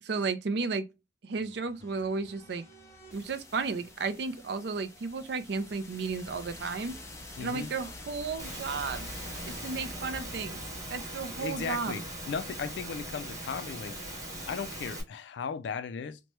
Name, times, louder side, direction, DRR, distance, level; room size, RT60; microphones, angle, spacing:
voice 1, 0.0-0.9 1.2-2.6 3.1-7.0 7.4-9.1 9.4-10.6 10.9-12.0, right 4 dB, 60° right, 0.4 m, -33 dB
sound 1, 1.4-13.2, left 1 dB, 15° left, 0.5 m, -47 dB
voice 2, 7.4-7.7 11.4-13.9 14.5-16.2, left 6 dB, 65° left, 0.3 m, -36 dB
Engine / Mechanisms, 8.4-15.0, right 1 dB, 15° right, 0.8 m, -40 dB
2.9 x 2.2 x 3.0 m
head